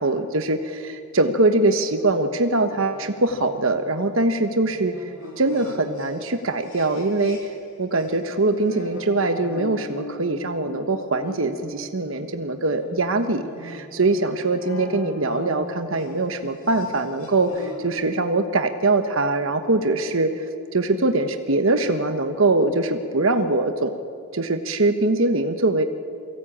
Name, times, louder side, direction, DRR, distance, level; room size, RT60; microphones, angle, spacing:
voice 1, 0.0-4.9 5.4-7.4 7.8-20.3 20.7-23.9 24.3-25.8, right 2 dB, 65° right, 7 dB, 1.2 m, -22 dB
sound 1, 1.9-7.7 8.0-17.9, left 1 dB, 70° left, 4.5 m, -41 dB
23.5 x 16.5 x 8.7 m, 2.4 s
head